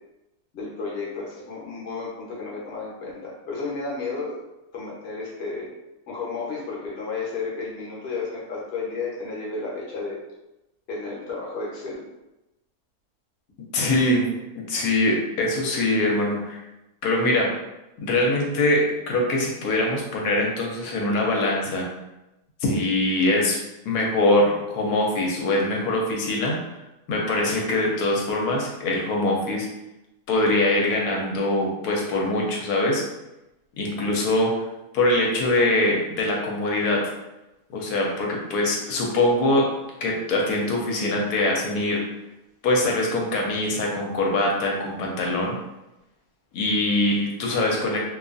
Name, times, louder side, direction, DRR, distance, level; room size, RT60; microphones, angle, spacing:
voice 1, 0.5-4.4 4.7-5.7 6.1-10.2 10.9-12.1, left 4 dB, 50° left, -4 dB, 0.8 m, -32 dB
voice 2, 13.7-14.3 14.5-16.6 17.0-17.5 18.0-21.9 22.6-23.6 23.9-26.6 27.1-29.7 30.3-33.0 33.8-34.6 34.9-37.1 37.7-39.7 40.0-42.0 42.6-45.5 46.5-48.0, left 1 dB, 80° left, -1 dB, 1.1 m, -23 dB
2.7 x 2.3 x 2.4 m, 0.95 s
omnidirectional pair, 1.6 m